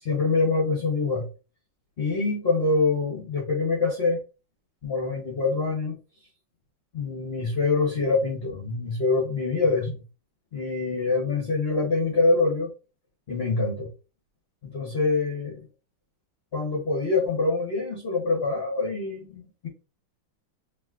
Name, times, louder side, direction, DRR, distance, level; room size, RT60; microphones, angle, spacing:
voice 1, 0.0-1.3 2.0-4.2 4.8-5.9 6.9-10.0 10.5-12.7 13.3-13.9 14.6-15.6 16.5-19.7, left 3 dB, 40° left, 0.9 m, -25 dB
6.0 x 3.1 x 2.4 m
omnidirectional pair, 2.3 m